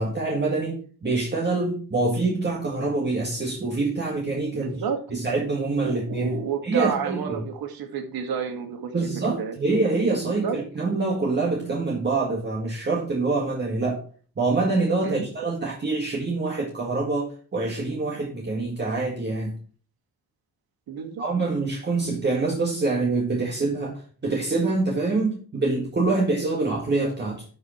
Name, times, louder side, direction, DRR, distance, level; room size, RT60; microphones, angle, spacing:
voice 1, 0.0-4.8 5.1-6.3 6.6-7.4 8.9-14.0 14.4-19.6 21.2-27.4, right 3 dB, 30° right, -2 dB, 1.9 m, -25 dB
voice 2, 4.5-5.2 5.8-9.6 10.2-10.6 15.0-15.3 20.9-21.2, right 6 dB, 75° right, 5 dB, 2.0 m, -31 dB
11.5 x 5.2 x 4.4 m, 0.42 s
cardioid pair, 125°, 37 cm